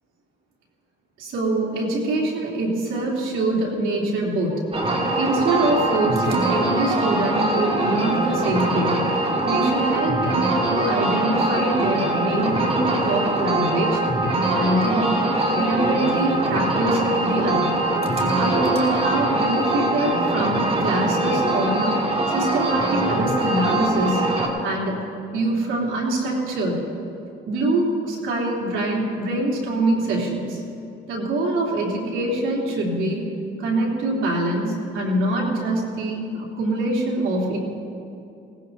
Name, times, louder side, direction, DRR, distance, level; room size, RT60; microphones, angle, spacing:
voice 1, 1.2-4.6 5.2-9.0 9.5-14.0 14.5-15.2 15.5-17.7 18.4-21.9 22.3-24.2 24.6-25.0 25.3-26.8 27.5-30.6 31.1-33.3 33.6-37.6, right 1 dB, 85° right, -4 dB, 3.4 m, -24 dB
sound 1, 4.7-24.5, right 2 dB, 30° right, 2.4 m, -23 dB
20.5 x 18.0 x 2.8 m, 2.7 s
cardioid pair, 90°, 20 cm